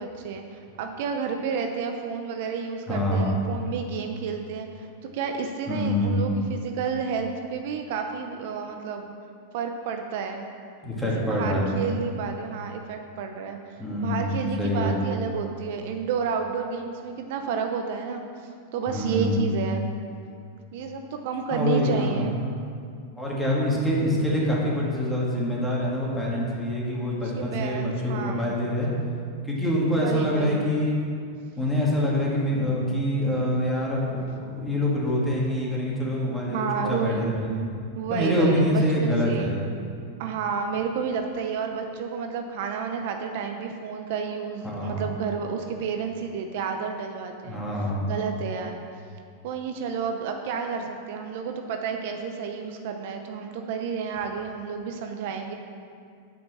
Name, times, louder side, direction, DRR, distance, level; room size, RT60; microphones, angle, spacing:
voice 1, 0.0-9.1 9.5-10.5 11.0-19.9 20.7-22.4 27.2-28.5 30.0-30.6 36.5-37.7 37.9-39.5 40.2-48.8 49.4-55.5, right 6 dB, 60° right, 5 dB, 0.7 m, -31 dB
voice 2, 2.9-3.3 5.7-6.3 10.8-11.7 13.8-14.3 14.6-15.0 18.9-19.4 21.5-22.3 23.2-28.9 29.4-31.0 31.6-37.3 38.1-39.7 44.6-45.0 47.5-48.1, left 1 dB, 5° left, -5 dB, 2.4 m, -25 dB
8.7 x 5.4 x 6.4 m, 2.3 s
hypercardioid pair, 120°, 0 cm